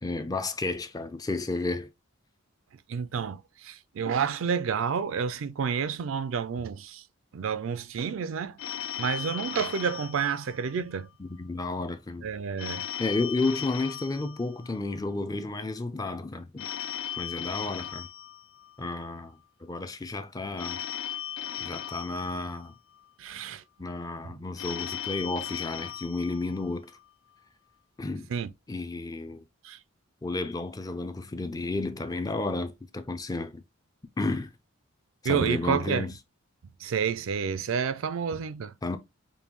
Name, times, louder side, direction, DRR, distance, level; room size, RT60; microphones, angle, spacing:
voice 1, 0.0-1.9 11.2-12.3 13.0-16.7 17.2-18.1 18.8-20.8 21.6-22.7 23.8-26.9 28.0-28.3 28.7-29.4 30.2-33.6 34.2-34.5 35.2-36.1 38.8-39.0, left 2 dB, 15° left, 0.4 m, -32 dB
voice 2, 2.9-7.0 7.3-8.6 9.0-11.1 12.2-12.9 23.2-23.6 24.2-24.4 28.3-28.5 29.6-29.8 35.2-36.1 36.8-38.7, right 6 dB, 65° right, 0.4 m, -29 dB
Telephone, 8.6-11.1 12.6-15.1 16.6-19.1 20.6-23.1 24.6-27.1, left 10 dB, 80° left, 0.4 m, -37 dB
5.3 x 2.2 x 3.0 m
head